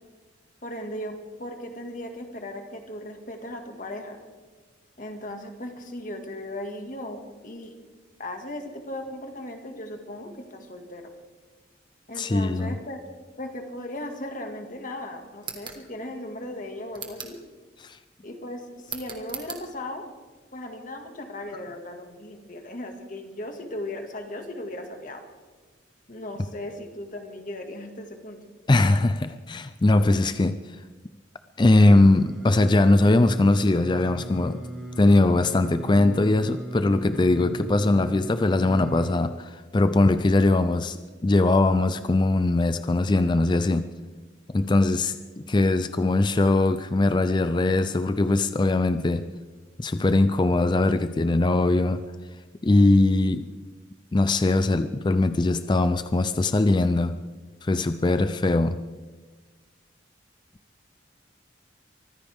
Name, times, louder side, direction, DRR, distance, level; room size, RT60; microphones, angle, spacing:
voice 1, 0.6-4.2 5.0-7.7 8.2-11.1 12.1-13.0 13.4-17.4 18.2-20.1 20.5-25.2 26.1-28.4, left 1 dB, 45° left, 4 dB, 2.0 m, -37 dB
voice 2, 12.2-12.8 17.8-18.0 28.7-30.6 31.6-34.7 35.0-41.0 41.2-43.9 44.5-49.3 49.8-52.0 52.6-53.5 54.1-57.2 57.6-58.9, left 2 dB, 25° left, 11 dB, 0.4 m, -21 dB
sound 1, 15.4-15.8 16.9-17.4 18.8-19.6, right 6 dB, 25° right, 1.6 m, -38 dB
Singing, 31.9-39.1, right 1 dB, 5° right, 2.9 m, -37 dB
24.0 x 15.0 x 3.6 m, 1.3 s
head